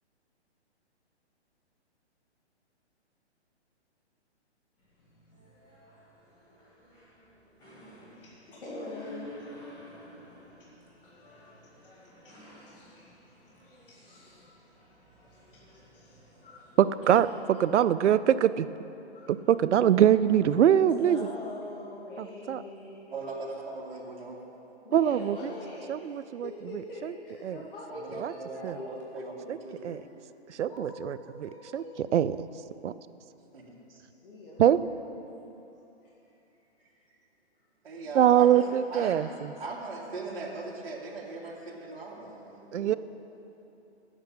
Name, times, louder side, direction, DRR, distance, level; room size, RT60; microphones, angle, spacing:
sound 1, 4.8-17.2, left 1 dB, 10° left, 1.4 m, -52 dB
voice 1, 8.1-9.6 10.0-16.8 19.1-19.5 20.9-23.0 24.8-29.0 29.8-29.9 30.7-32.0 34.2-35.1 36.2-36.3 42.6-43.0, left 2 dB, 50° left, -5 dB, 2.3 m, -45 dB
voice 2, 16.8-18.7 19.3-21.2 22.2-22.6 24.9-25.5 25.9-26.5 27.0-27.1 27.4-27.6 28.2-28.3 28.6-28.8 29.8-30.0 30.5-31.8 32.1-32.3 32.8-32.9 34.6-34.8 38.1-39.5 42.7-43.0, right 10 dB, 85° right, 15 dB, 0.5 m, -23 dB
voice 3, 23.1-24.4 27.9-29.8 33.5-34.0 37.8-38.7 38.9-39.2 39.6-42.7, right 3 dB, 55° right, -5 dB, 2.1 m, -39 dB
8.8 x 8.2 x 7.3 m, 3.0 s
hypercardioid pair, 165°, 34 cm